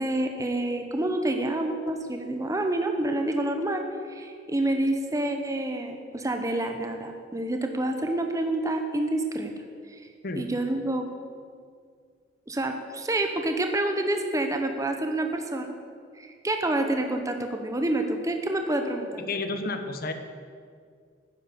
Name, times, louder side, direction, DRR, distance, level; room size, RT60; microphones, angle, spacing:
voice 1, 0.0-9.5 9.9-10.0 10.4-11.1 12.5-15.7 16.2-19.2, right 1 dB, 15° right, 5 dB, 0.8 m, -28 dB
voice 2, 19.2-20.1, left 3 dB, 55° left, 8 dB, 1.0 m, -31 dB
9.9 x 9.7 x 7.2 m, 2.1 s
head